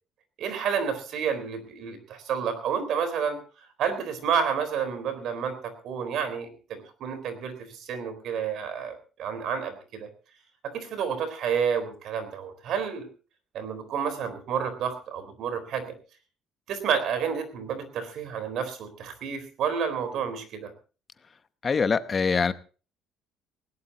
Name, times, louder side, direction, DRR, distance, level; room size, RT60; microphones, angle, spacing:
voice 1, 0.4-3.4 3.8-10.1 10.6-13.1 13.5-15.9 16.7-20.7, right 7 dB, 55° right, 10 dB, 3.9 m, -30 dB
voice 2, 21.6-22.5, left 5 dB, 25° left, 12 dB, 0.9 m, -23 dB
20.0 x 17.5 x 2.9 m, 0.36 s
cardioid pair, 175°, 0 cm